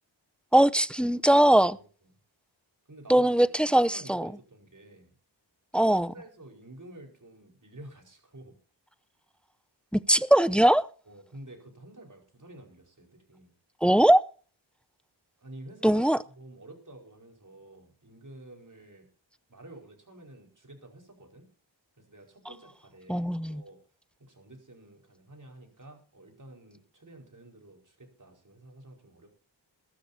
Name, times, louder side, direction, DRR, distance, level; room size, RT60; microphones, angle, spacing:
voice 1, 0.5-1.8 3.1-4.3 5.7-6.1 9.9-10.9 13.8-14.2 15.8-16.2 23.1-23.6, right 1 dB, ahead, 0.6 m, -21 dB
voice 2, 1.7-2.1 2.9-3.3 3.6-5.1 6.1-8.5 11.1-13.5 15.4-16.1 16.4-19.1 19.5-21.5 22.0-23.8 24.2-29.3, right 1 dB, 40° right, 5.0 m, -50 dB
21.5 x 13.0 x 2.8 m
wide cardioid pair, 80°, 46 cm